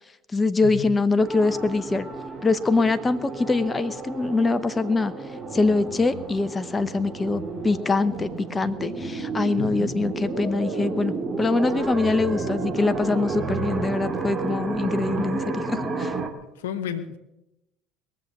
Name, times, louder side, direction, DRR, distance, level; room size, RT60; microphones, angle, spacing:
voice 1, 0.3-2.1 2.4-5.1 5.5-16.1, left 3 dB, 20° left, 12 dB, 0.9 m, -24 dB
sound 1, 1.2-16.3, right 3 dB, 30° right, 2.5 m, -31 dB
voice 2, 16.6-17.2, left 8 dB, 75° left, 10 dB, 1.1 m, -31 dB
21.0 x 7.5 x 7.7 m, 0.90 s
hypercardioid pair, 65°, 0 cm